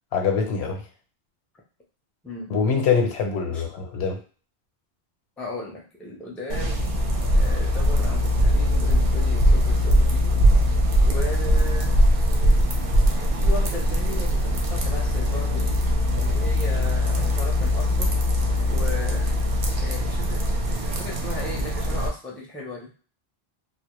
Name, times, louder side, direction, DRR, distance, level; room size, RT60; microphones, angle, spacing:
voice 1, 0.1-0.8 2.5-4.2, left 5 dB, 80° left, 3 dB, 0.8 m, -24 dB
voice 2, 2.2-2.6 3.5-3.6 5.4-6.9 7.3-10.4 11.0-12.0 13.2-15.8 16.2-18.2 18.7-19.3 19.8-22.9, left 2 dB, ahead, -2 dB, 0.4 m, -36 dB
sound 1, 6.5-22.1, equal, 60° right, 0.7 m, -21 dB
2.1 x 2.0 x 3.0 m, 0.39 s
omnidirectional pair, 1.1 m